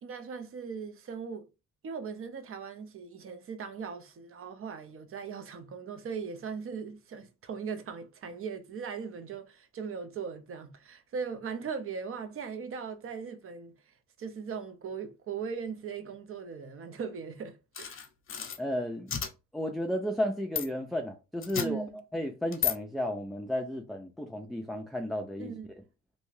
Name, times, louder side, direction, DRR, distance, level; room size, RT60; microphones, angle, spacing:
voice 1, 0.0-1.5 1.8-17.9 21.6-22.0 25.4-25.7, right 6 dB, 45° right, 0.6 m, -39 dB
sound 1, 17.8-18.6 19.1-19.3 20.6-20.7 21.4-21.7 22.5-22.7, left 9 dB, 45° left, 0.8 m, -32 dB
voice 2, 18.6-19.1 19.5-21.8 22.1-25.5, left 1 dB, ahead, 0.3 m, -33 dB
2.6 x 2.3 x 3.1 m
cardioid pair, 90°, 30 cm